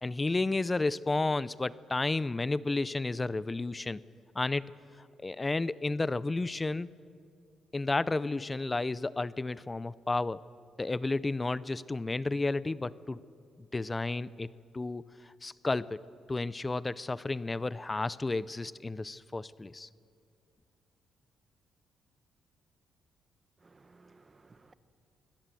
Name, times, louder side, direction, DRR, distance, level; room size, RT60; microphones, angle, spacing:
voice 1, 0.0-4.0 4.3-4.6 5.2-6.9 7.7-10.4 10.8-13.2 13.7-14.5 14.7-15.0 15.4-16.0 16.3-19.9, left 3 dB, 20° left, 19 dB, 0.5 m, -32 dB
voice 2, 23.6-24.7, right 3 dB, 25° right, 12 dB, 1.2 m, -59 dB
24.0 x 17.5 x 7.6 m, 2.3 s
cardioid pair, 90°, 0 cm